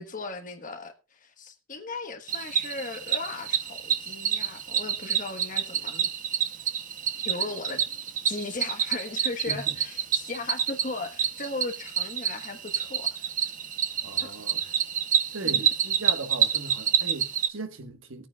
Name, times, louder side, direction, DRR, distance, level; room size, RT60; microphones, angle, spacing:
voice 1, 0.0-6.1 7.2-7.8 8.2-13.3 14.2-14.3 14.6-14.8 15.4-15.7, left 3 dB, 40° left, 1.3 m, -37 dB
Cricket, 2.3-17.5, right 8 dB, 40° right, 0.8 m, -28 dB
voice 2, 9.5-9.8 14.0-14.6 15.3-18.3, right 2 dB, 70° right, 1.4 m, -38 dB
20.0 x 8.8 x 2.3 m
head